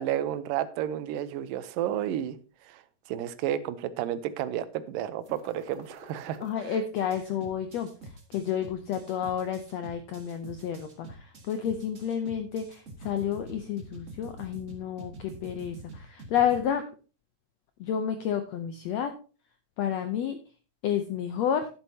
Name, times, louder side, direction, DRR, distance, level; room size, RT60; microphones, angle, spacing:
voice 1, 0.0-2.4 2.7-2.8 3.1-6.4, right 11 dB, 85° right, 13 dB, 2.4 m, -31 dB
sound 1, 5.2-6.5 6.9-16.6, right 2 dB, 50° right, 0.9 m, -46 dB
voice 2, 6.4-16.8 17.8-19.1 19.8-20.4 20.8-21.7, left 9 dB, 80° left, 8 dB, 1.5 m, -30 dB
11.5 x 10.0 x 2.8 m, 0.36 s
omnidirectional pair, 3.9 m